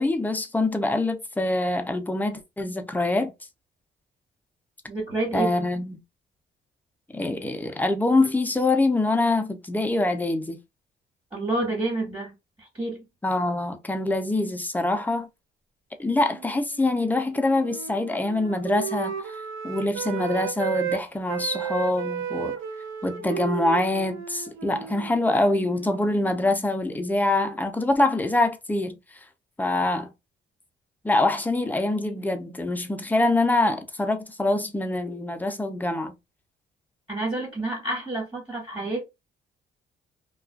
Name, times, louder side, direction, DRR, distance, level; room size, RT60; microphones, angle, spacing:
voice 1, 0.0-3.3 5.3-6.0 7.1-10.6 13.2-15.3 16.0-19.2 19.6-22.5 23.0-29.0 29.6-30.1 31.0-36.2, left 2 dB, 10° left, 0.5 m, -24 dB
voice 2, 4.9-5.6 11.3-13.0 37.1-39.0, right 2 dB, 25° right, 1.5 m, -29 dB
Wind instrument woodwind instrument, 16.1-21.0 21.3-26.6, right 9 dB, 80° right, 0.6 m, -34 dB
2.4 x 2.3 x 2.2 m
cardioid pair, 90°, 20 cm